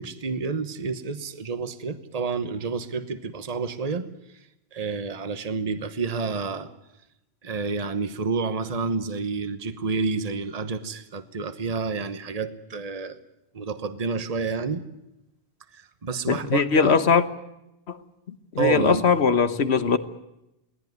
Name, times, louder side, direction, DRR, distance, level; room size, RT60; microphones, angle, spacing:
voice 1, 0.0-4.1 4.7-6.7 7.4-13.2 13.5-14.8 15.7-17.0 18.6-19.0, right 4 dB, 40° right, 10 dB, 1.2 m, -29 dB
voice 2, 16.3-17.2 17.9-18.0 18.3-20.0, left 5 dB, 85° left, 12 dB, 1.5 m, -21 dB
23.0 x 17.5 x 9.4 m, 0.89 s
omnidirectional pair, 1.1 m